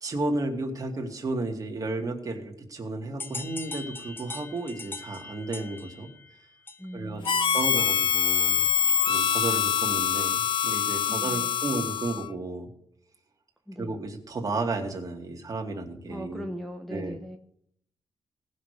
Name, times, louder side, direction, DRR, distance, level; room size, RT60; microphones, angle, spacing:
voice 1, 0.0-6.1 6.9-8.7 9.1-12.7 13.8-16.5 16.9-17.2, right 2 dB, 35° right, 2 dB, 2.5 m, -33 dB
sound 1, 3.2-7.7, left 3 dB, 20° left, 0.8 m, -41 dB
voice 2, 6.8-7.7 11.1-11.5 13.7-14.0 16.1-17.4, equal, ahead, 1 dB, 1.2 m, -39 dB
Harmonica, 7.2-12.3, left 8 dB, 55° left, 0.5 m, -25 dB
18.5 x 6.5 x 5.1 m, 0.68 s
wide cardioid pair, 125°, 10 cm